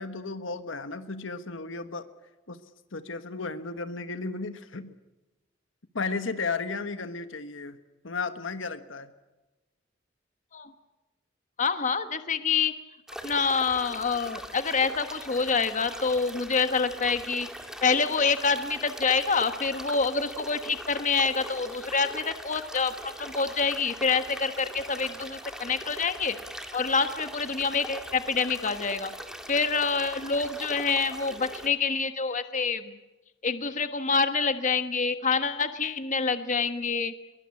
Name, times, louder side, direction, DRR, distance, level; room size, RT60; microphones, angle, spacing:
voice 1, 0.0-2.1 2.5-2.6 2.9-4.9 5.9-7.8 8.0-9.1, left 4 dB, 75° left, 11 dB, 1.4 m, -34 dB
voice 2, 11.6-12.7 13.2-17.5 17.8-26.4 26.7-29.1 29.5-33.0 33.4-37.1, left 5 dB, 40° left, 10 dB, 1.3 m, -27 dB
sound 1, 13.1-31.7, equal, 5° right, 2.1 m, -41 dB
22.5 x 21.5 x 8.4 m, 1.1 s
head